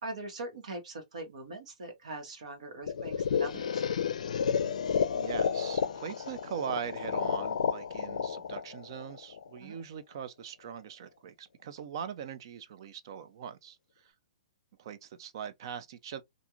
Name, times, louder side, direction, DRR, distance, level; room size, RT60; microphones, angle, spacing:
voice 1, 0.0-3.8 9.6-9.8, right 2 dB, 70° right, 1.2 m, -42 dB
sound 1, 2.9-9.7, left 7 dB, 75° left, 0.4 m, -31 dB
voice 2, 5.1-13.8 14.0-14.1 14.8-16.2, right 8 dB, 40° right, 0.4 m, -41 dB
2.9 x 2.5 x 2.4 m
hypercardioid pair, 170°, 4 cm